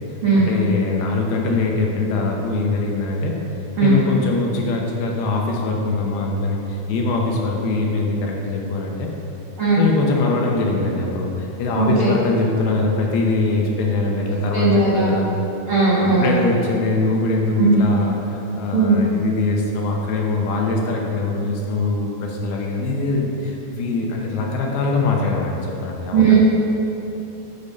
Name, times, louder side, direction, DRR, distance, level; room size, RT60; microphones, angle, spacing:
voice 1, 0.3-3.4 3.8-9.1 9.8-15.3 16.2-26.3, left 3 dB, 75° left, 0 dB, 2.6 m, -22 dB
voice 2, 11.7-12.1 14.5-15.1 15.7-16.4 17.6-17.8 18.7-19.0 26.1-26.3, right 4 dB, 80° right, -8 dB, 1.2 m, -17 dB
10.5 x 6.9 x 5.3 m, 3.0 s
omnidirectional pair, 4.9 m